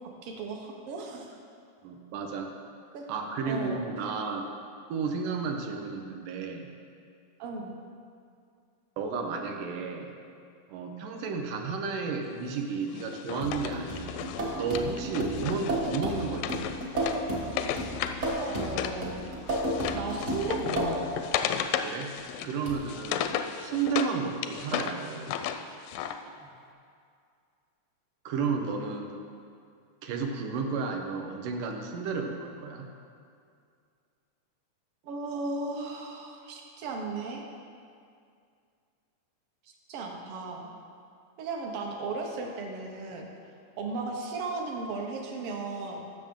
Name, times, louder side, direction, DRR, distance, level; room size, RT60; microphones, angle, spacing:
voice 1, 0.2-1.4 2.9-3.1 3.4-3.8 7.4-7.7 18.4-19.3 19.9-21.1 26.4-26.5 35.0-37.4 39.9-40.7 41.4-43.3 43.8-46.0, right 3 dB, 65° right, 1 dB, 1.4 m, -35 dB
voice 2, 1.8-2.5 3.1-4.4 4.9-6.7 9.0-10.1 10.7-16.7 21.8-22.1 22.4-25.4 28.3-29.2 30.0-32.9, right 5 dB, 80° right, 3 dB, 2.4 m, -32 dB
Wood, 13.0-19.0 19.3-24.1 24.4-26.2, left 9 dB, 85° left, 2.1 m, -34 dB
sound 1, 13.4-21.2 22.7-22.8, right 1 dB, 45° right, 0.9 m, -33 dB
14.5 x 6.5 x 3.7 m, 2.3 s
omnidirectional pair, 3.7 m